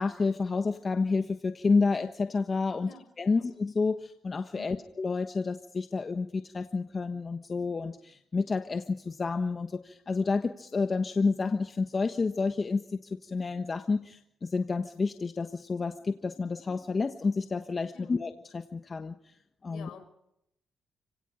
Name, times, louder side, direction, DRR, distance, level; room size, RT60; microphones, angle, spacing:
voice 1, 0.0-2.9 3.2-19.1 19.6-19.9, left 4 dB, 35° left, 7 dB, 1.3 m, -30 dB
voice 2, 2.8-3.5 4.5-4.8 17.9-18.1 19.7-20.0, left 6 dB, 70° left, 7 dB, 6.1 m, -49 dB
29.5 x 17.5 x 5.1 m, 0.78 s
cardioid pair, 90°, 0 cm